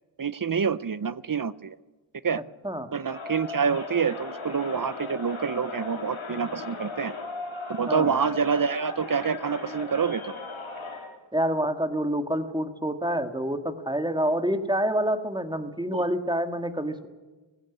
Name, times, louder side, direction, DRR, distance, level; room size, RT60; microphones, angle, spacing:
voice 1, 0.2-1.8 2.2-2.4 2.9-7.1 7.7-10.4 15.9-16.0, right 6 dB, 45° right, 17 dB, 0.7 m, -27 dB
Crowd, 3.0-11.2, left 3 dB, 85° left, 3.6 m, -37 dB
voice 2, 7.9-8.2 11.3-17.1, right 1 dB, 10° right, 7 dB, 1.9 m, -27 dB
19.0 x 16.0 x 9.7 m, 1.3 s
wide cardioid pair, 50°, 47 cm